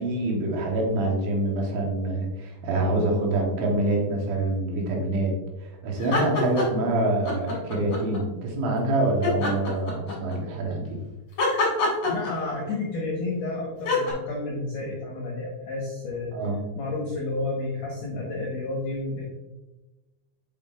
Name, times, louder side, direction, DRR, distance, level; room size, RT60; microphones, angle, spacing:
voice 1, 0.0-11.0 16.3-16.6, right 2 dB, 80° right, -1 dB, 3.7 m, -26 dB
sound 1, 6.0-6.9 7.2-8.2 9.2-10.4 11.4-12.7 13.8-14.1, left 3 dB, 55° left, 1.5 m, -26 dB
voice 2, 11.8-16.5 16.8-19.2, left 2 dB, 75° left, -3 dB, 1.9 m, -31 dB
8.3 x 5.4 x 2.4 m, 1.1 s
omnidirectional pair, 5.4 m